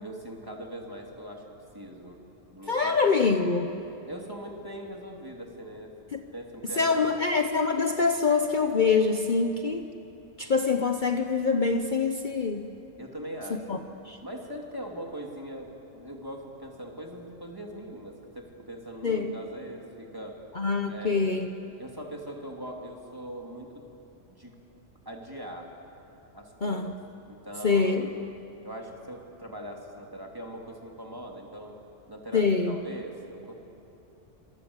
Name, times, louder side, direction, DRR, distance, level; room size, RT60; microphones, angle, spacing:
voice 1, 0.0-1.5 1.7-2.2 2.5-2.9 4.1-5.9 6.3-7.1 13.0-13.9 14.2-20.4 20.9-21.3 21.8-23.8 24.3-24.5 25.0-25.7 26.3-26.9 27.3-28.1 28.6-31.8 32.1-33.5, equal, 15° right, 0 dB, 3.0 m, -41 dB
voice 2, 2.7-3.7 6.1-6.2 6.8-9.8 10.4-12.7 13.7-13.8 14.0-14.2 19.0-19.4 20.5-21.5 26.6-26.9 27.6-28.1 32.3-32.8, left 4 dB, 40° left, 6 dB, 1.0 m, -25 dB
27.5 x 26.5 x 8.2 m, 2.9 s
omnidirectional pair, 1.3 m